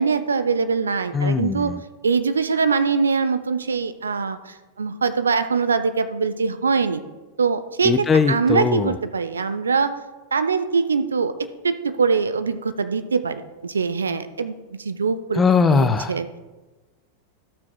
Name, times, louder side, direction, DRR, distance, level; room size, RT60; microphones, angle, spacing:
voice 1, 0.0-1.7 2.0-7.0 7.4-9.9 10.3-11.3 11.6-15.4 15.7-16.3, right 5 dB, 70° right, 11 dB, 0.6 m, -23 dB
voice 2, 1.1-1.8 7.8-9.0 15.4-16.4, left 5 dB, 20° left, 10 dB, 0.5 m, -20 dB
17.5 x 6.0 x 2.3 m, 1.2 s
figure-of-eight pair, 90°, 0 cm